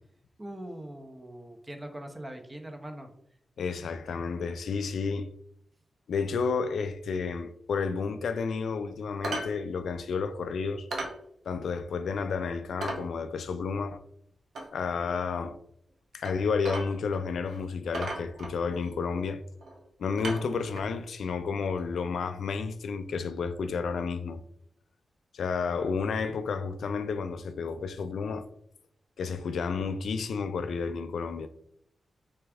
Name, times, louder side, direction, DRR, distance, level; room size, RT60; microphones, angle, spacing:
voice 1, 0.4-3.1, right 1 dB, 25° right, 0.8 m, -42 dB
voice 2, 3.6-5.3 6.1-10.9 11.5-14.0 14.7-15.6 16.1-19.4 20.0-24.4 25.3-28.5 29.2-31.5, left 5 dB, 85° left, 0.3 m, -31 dB
sound 1, 9.2-9.6 9.8-9.9 10.3-10.4 10.9-11.2 11.6-11.7 12.2-12.3 12.8-13.1 14.6-14.7 16.2-16.4 16.7-17.2 17.5-17.6 17.9-18.9 19.6-19.8 20.2-21.0 21.9-22.0, right 2 dB, 75° right, 0.8 m, -36 dB
3.5 x 3.3 x 3.4 m
cardioid pair, 60°, 0 cm